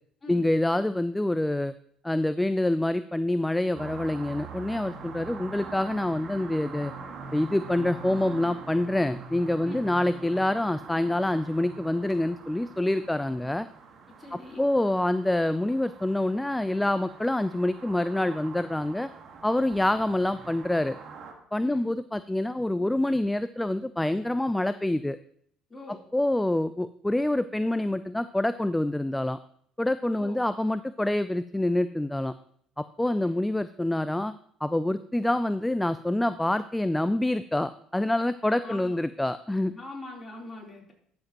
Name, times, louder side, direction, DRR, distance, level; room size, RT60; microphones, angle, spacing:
voice 1, 0.3-1.7 2.0-6.9 7.3-13.7 14.3-19.1 19.4-21.0 21.5-25.2 26.1-29.4 29.8-32.3 32.8-39.7, left 1 dB, 10° left, 14 dB, 0.4 m, -26 dB
sound 1, 3.7-21.3, right 5 dB, 50° right, 1.7 m, -44 dB
voice 2, 14.2-14.6 21.6-21.9 25.7-26.0 30.1-30.4 38.6-39.0 39.7-40.9, left 2 dB, 25° left, -1 dB, 3.6 m, -42 dB
12.5 x 7.3 x 3.0 m, 0.66 s
hypercardioid pair, 60°, 0 cm